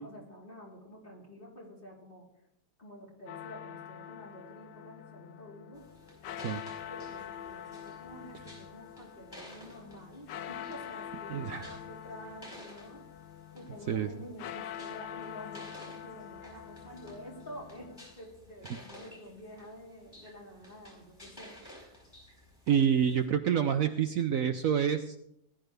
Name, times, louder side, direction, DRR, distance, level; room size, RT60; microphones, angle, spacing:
voice 1, 0.0-2.3 2.8-5.8 6.9-13.0 13.5-21.6, equal, 30° left, -4 dB, 4.0 m, -49 dB
sound 1, 3.3-18.2, left 9 dB, 85° left, 1.3 m, -45 dB
sound 2, 5.7-23.3, equal, 15° left, 4.6 m, -54 dB
voice 2, 11.3-11.8 13.9-14.1 22.7-25.1, right 8 dB, 65° right, 8 dB, 1.0 m, -27 dB
18.5 x 11.5 x 3.4 m, 0.79 s
omnidirectional pair, 1.8 m